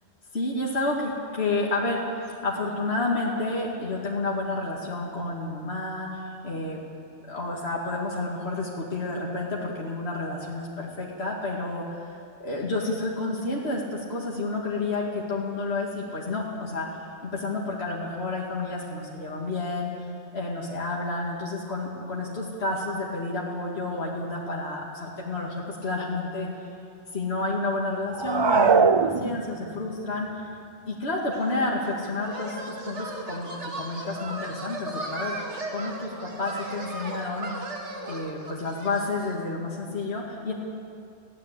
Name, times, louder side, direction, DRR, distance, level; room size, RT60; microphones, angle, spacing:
voice 1, 0.3-6.8 7.3-16.9 17.2-20.1 20.3-26.5 27.1-30.5 30.9-33.5 33.8-35.4 35.7-37.5 38.1-40.5, left 2 dB, 65° left, -3 dB, 2.5 m, -30 dB
sound 1, 28.1-29.8, right 5 dB, 40° right, 0.4 m, -21 dB
sound 2, 31.3-39.4, right 2 dB, 80° right, 2.3 m, -37 dB
22.5 x 16.5 x 8.3 m, 2.4 s
omnidirectional pair, 1.2 m